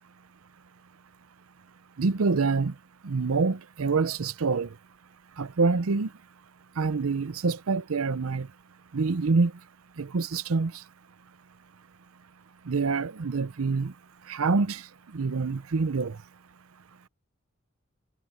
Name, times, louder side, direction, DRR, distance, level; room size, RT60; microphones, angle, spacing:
voice 1, 2.0-2.7 3.0-4.7 5.4-6.1 6.8-8.5 8.9-9.5 10.0-10.7 12.7-13.9 14.3-14.8 15.1-16.2, right 4 dB, 85° right, 0.6 m, -26 dB
head